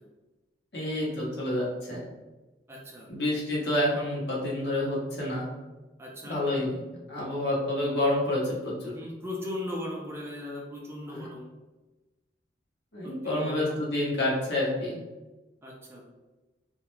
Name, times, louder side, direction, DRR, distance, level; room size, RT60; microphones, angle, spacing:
voice 1, 0.7-2.1 3.1-5.5 6.2-6.8 7.1-8.9 11.1-11.3 12.9-15.0, left 1 dB, 65° left, -5 dB, 0.9 m, -28 dB
voice 2, 2.7-3.1 6.0-6.4 8.9-11.5 13.0-13.8 15.6-16.0, left 1 dB, 15° right, -3 dB, 0.4 m, -38 dB
2.3 x 2.0 x 3.0 m, 1.1 s
head